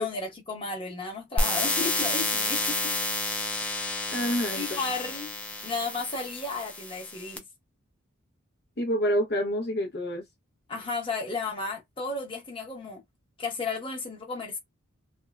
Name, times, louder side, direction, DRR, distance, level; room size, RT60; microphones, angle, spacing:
voice 1, 0.0-2.9 4.6-5.3 5.6-7.4 10.7-13.0 13.4-14.6, left 3 dB, 25° left, 1.0 m, -33 dB
sound 1, 1.4-7.4, left 2 dB, 5° left, 0.4 m, -30 dB
voice 2, 4.1-4.6 8.8-10.2, equal, 50° left, 0.7 m, -27 dB
3.4 x 2.1 x 2.2 m
head